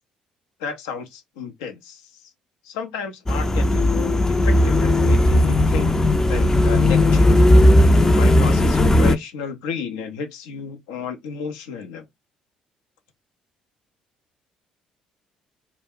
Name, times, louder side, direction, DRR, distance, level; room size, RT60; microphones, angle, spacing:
voice 1, 0.6-2.0 2.6-5.9 6.3-7.3 8.0-12.1, left 6 dB, 75° left, 0.6 m, -32 dB
sound 1, 3.3-9.2, left 1 dB, 20° left, 0.4 m, -16 dB
2.2 x 2.0 x 3.4 m
hypercardioid pair, 55°, 3 cm